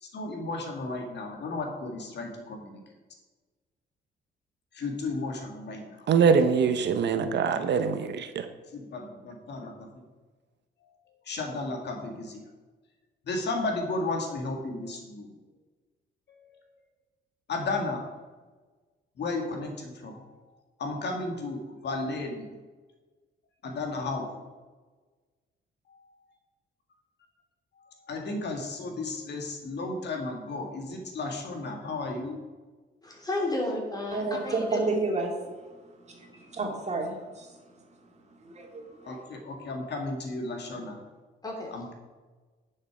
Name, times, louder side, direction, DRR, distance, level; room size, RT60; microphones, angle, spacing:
voice 1, 0.0-2.8 4.7-6.1 8.7-10.0 11.3-12.4 13.3-15.3 17.5-18.0 19.2-20.3 20.8-22.5 23.6-24.4 28.1-32.4 39.1-41.0 41.7-41.9, left 2 dB, 60° left, 2 dB, 2.0 m, -34 dB
voice 2, 6.1-8.4, right 6 dB, 60° right, 9 dB, 0.8 m, -23 dB
voice 3, 33.0-34.8 41.4-41.7, left 2 dB, 20° left, -1 dB, 3.1 m, -32 dB
voice 4, 34.1-39.3, right 3 dB, 35° right, 1 dB, 2.4 m, -32 dB
10.5 x 6.6 x 4.9 m, 1.3 s
cardioid pair, 90°, 20 cm